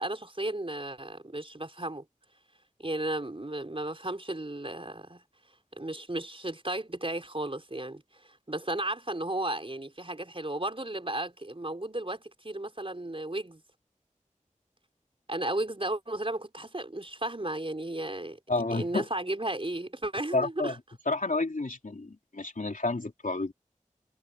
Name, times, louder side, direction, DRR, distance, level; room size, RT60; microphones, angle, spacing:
voice 1, 0.0-2.0 2.8-5.2 5.8-13.6 15.3-18.4 18.7-20.8, right 1 dB, 45° right, 4.5 m, -34 dB
voice 2, 18.5-19.0 20.3-20.7 21.0-23.5, left 2 dB, 90° left, 3.4 m, -30 dB
wide cardioid pair, 45°, 13 cm